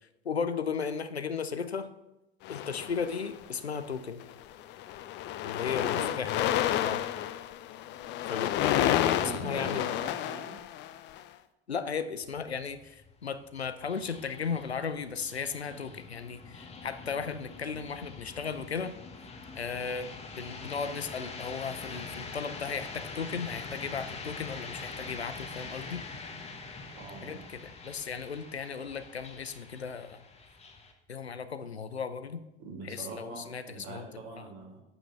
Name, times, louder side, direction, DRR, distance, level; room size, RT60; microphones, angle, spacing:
voice 1, 0.2-1.9 2.5-4.2 5.4-6.6 6.8-7.0 8.3-9.0 9.3-9.9 11.7-19.0 19.6-26.0 27.2-30.2 31.1-32.4 32.9-34.1 34.4-34.5, left 6 dB, 90° left, 11 dB, 0.5 m, -36 dB
sound 1, 2.4-3.4 4.2-4.4 4.7-11.2, left 12 dB, 35° left, 0.5 m, -30 dB
voice 2, 5.8-6.2 9.0-10.5 26.9-27.4 32.6-34.8, right 4 dB, 50° right, -1 dB, 2.4 m, -43 dB
sound 2, 12.1-30.9, left 4 dB, 20° left, 1.1 m, -44 dB
7.9 x 6.0 x 4.4 m, 0.92 s
figure-of-eight pair, 70°, 31 cm